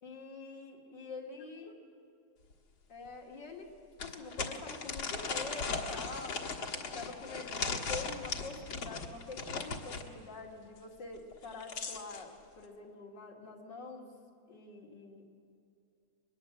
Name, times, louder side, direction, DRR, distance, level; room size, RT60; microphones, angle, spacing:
voice 1, 0.0-1.8 2.9-3.7 4.0-6.4 6.8-14.1 14.5-15.2, left 3 dB, 60° left, -1 dB, 3.1 m, -46 dB
sound 1, 2.5-2.6 3.1-3.2 4.0-10.1 11.3-12.2, left 4 dB, 85° left, 2.5 m, -38 dB
22.5 x 21.0 x 7.9 m, 2.4 s
omnidirectional pair, 2.2 m